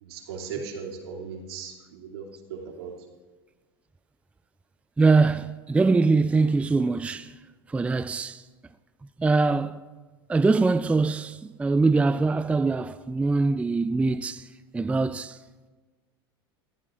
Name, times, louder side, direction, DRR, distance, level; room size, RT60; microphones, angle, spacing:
voice 1, 0.0-2.9, right 6 dB, 75° right, 2.8 m, -38 dB
voice 2, 5.0-7.4 7.7-8.4 9.2-9.8 10.3-14.5 14.7-15.4, right 3 dB, 10° right, 0.4 m, -23 dB
22.0 x 14.5 x 2.5 m
hypercardioid pair, 90°, 13 cm